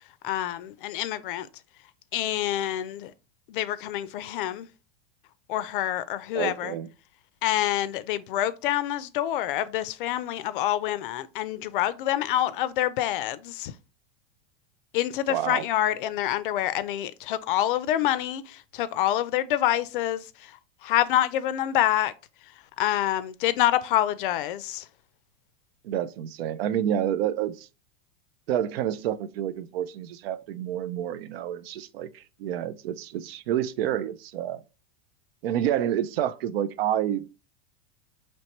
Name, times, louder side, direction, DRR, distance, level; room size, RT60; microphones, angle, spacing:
voice 1, 0.2-1.5 2.1-3.1 3.5-4.7 5.5-6.7 7.4-13.7 14.9-20.5 20.8-22.1 22.8-24.9, left 13 dB, 60° left, 0.4 m, -27 dB
voice 2, 6.3-6.9 15.3-15.6 25.8-27.7 28.5-34.6 35.4-37.4, right 10 dB, 75° right, 0.5 m, -29 dB
4.4 x 3.1 x 2.9 m
supercardioid pair, 170°, 31 cm